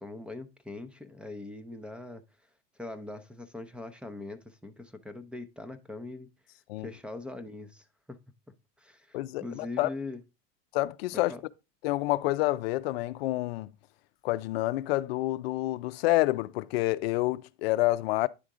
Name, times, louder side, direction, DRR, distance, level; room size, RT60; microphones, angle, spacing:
voice 1, 0.0-2.2 2.8-6.3 6.8-8.2 8.8-10.2 11.1-11.4, left 2 dB, 5° right, 0.7 m, -42 dB
voice 2, 9.1-9.9 10.7-11.3 11.8-13.7 14.2-18.3, left 18 dB, 80° left, 0.5 m, -28 dB
9.8 x 3.5 x 3.7 m
supercardioid pair, 110°, 30 cm